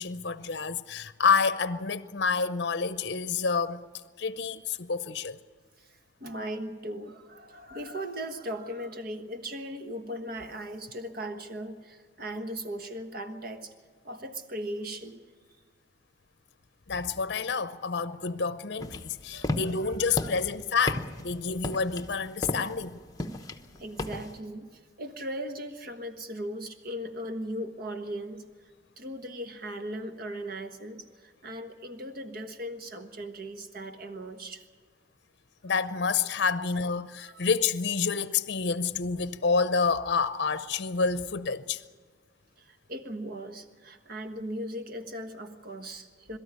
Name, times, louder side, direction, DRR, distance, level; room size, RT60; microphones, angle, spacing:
voice 1, 0.0-3.8 4.2-5.4 16.9-23.0 35.6-41.8, left 5 dB, 60° left, 0.7 m, -28 dB
voice 2, 6.2-13.7 14.0-15.3 19.3-20.4 23.4-28.4 29.0-34.6 36.4-36.6 37.2-37.4 42.6-46.4, right 1 dB, 50° right, 1.4 m, -38 dB
sound 1, 18.8-24.4, left 2 dB, 20° left, 0.9 m, -35 dB
23.0 x 13.0 x 9.8 m
head